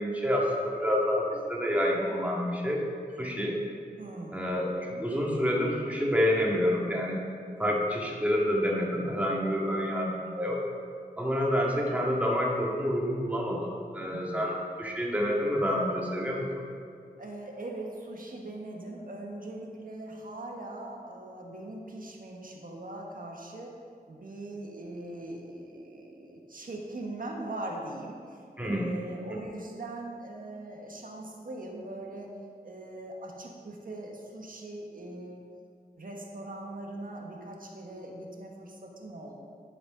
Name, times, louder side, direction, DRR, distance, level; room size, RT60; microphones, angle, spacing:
voice 1, 0.0-2.8 3.2-3.6 4.3-7.2 7.6-10.6 11.2-16.5 28.6-28.9 29.3-29.4, equal, 10° right, -3 dB, 1.9 m, -28 dB
voice 2, 4.0-4.4 14.0-14.5 17.2-23.7 24.1-32.3 32.6-35.4 36.0-39.3, right 2 dB, 60° right, 0 dB, 1.4 m, -41 dB
11.0 x 5.3 x 5.1 m, 2.3 s
wide cardioid pair, 60°, 16 cm